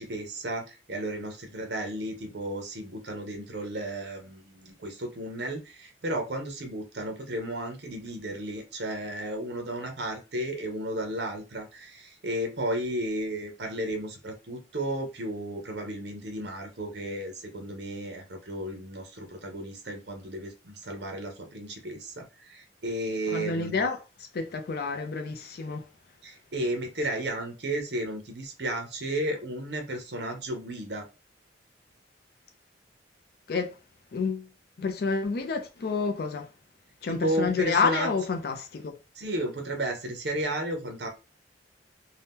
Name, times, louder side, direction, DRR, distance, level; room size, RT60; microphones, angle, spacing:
voice 1, 0.0-23.9 26.2-31.0 37.1-38.1 39.2-41.1, right 1 dB, 65° right, 0.7 m, -33 dB
voice 2, 23.3-24.0 24.3-25.8 33.5-33.7 34.1-34.5 34.8-36.5 37.0-38.9, left 4 dB, 55° left, 0.4 m, -29 dB
2.8 x 2.1 x 3.5 m
head